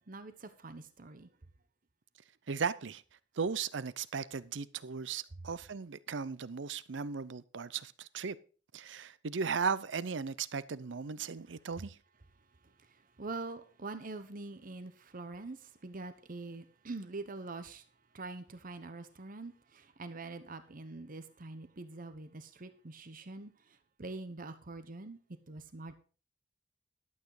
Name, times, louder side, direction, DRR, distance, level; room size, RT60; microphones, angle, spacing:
voice 1, 0.1-1.3 12.6-17.8 18.1-25.2 25.5-25.9, right 3 dB, 45° right, 1.0 m, -44 dB
voice 2, 2.5-3.0 3.4-8.4 8.7-12.0, right 5 dB, 70° right, 0.6 m, -36 dB
12.0 x 8.5 x 4.8 m
head